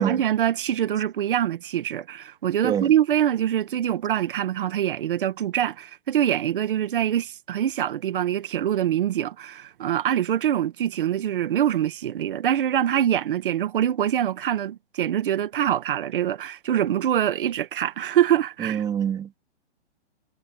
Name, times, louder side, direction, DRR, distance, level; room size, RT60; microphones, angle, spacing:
voice 1, 0.0-18.8, right 10 dB, 50° right, 2.0 m, -24 dB
voice 2, 18.6-19.4, right 9 dB, 10° right, 2.9 m, -26 dB
hypercardioid pair, 165°, 34 cm